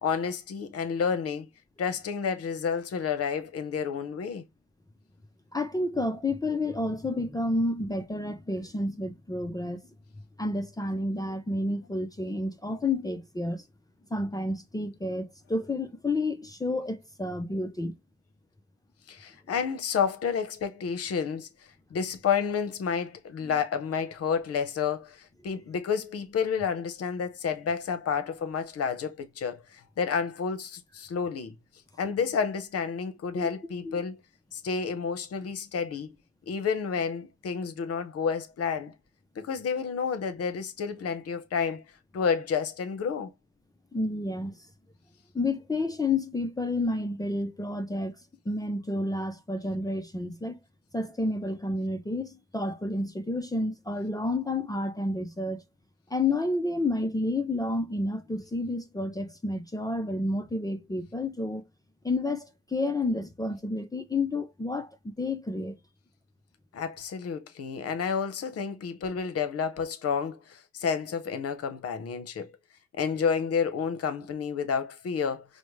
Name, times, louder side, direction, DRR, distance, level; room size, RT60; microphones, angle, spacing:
voice 1, 0.0-1.5 1.8-4.4 19.1-21.5 21.9-31.5 32.0-34.2 34.5-36.1 36.5-38.9 39.4-41.8 42.1-43.3 66.7-72.6 73.0-75.5, left 6 dB, 50° left, 0.8 m, -30 dB
voice 2, 5.5-9.8 10.4-13.6 14.1-18.0 33.3-33.5 33.8-34.0 43.9-44.7 45.3-48.2 48.5-50.6 50.9-55.6 56.1-61.6 62.0-65.8, left 2 dB, 10° left, 0.5 m, -30 dB
5.0 x 2.1 x 3.1 m
cardioid pair, 90°, 30 cm